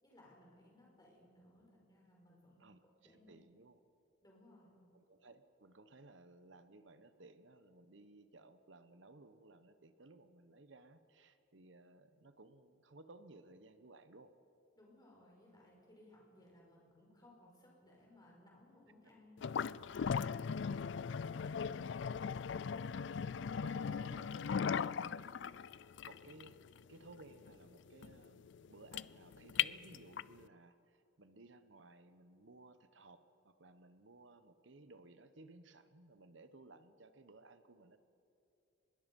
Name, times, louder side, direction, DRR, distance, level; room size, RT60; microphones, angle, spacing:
voice 1, 0.0-2.6 3.0-3.3 4.2-4.8 14.8-19.7, left 1 dB, 20° left, -2 dB, 5.2 m, -63 dB
voice 2, 2.6-3.8 4.9-14.3 23.1-25.1 26.0-26.6 26.9-38.0, right 2 dB, 75° right, 11 dB, 1.1 m, -59 dB
sound 1, 19.4-30.4, left 7 dB, 65° left, 0.4 m, -39 dB
24.5 x 21.5 x 5.4 m, 2.8 s
head